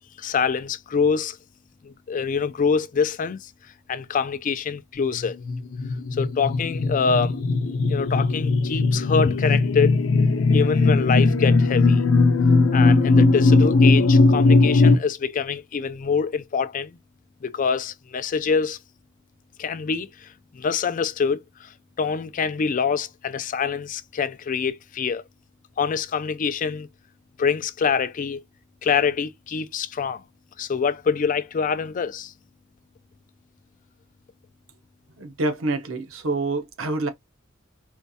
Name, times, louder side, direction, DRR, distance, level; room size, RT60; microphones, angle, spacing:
voice 1, 0.2-1.4 1.8-3.5 3.9-5.4 6.2-7.4 7.9-10.0 10.5-12.0 12.7-17.0 17.4-18.8 19.6-21.7 22.0-25.2 25.8-26.9 27.4-28.4 28.8-30.2 30.6-32.3, left 6 dB, 40° left, 0.4 m, -25 dB
sound 1, 5.2-15.0, left 3 dB, 85° left, 0.6 m, -18 dB
voice 2, 35.2-37.1, right 2 dB, 85° right, 0.8 m, -27 dB
4.3 x 2.3 x 2.6 m
head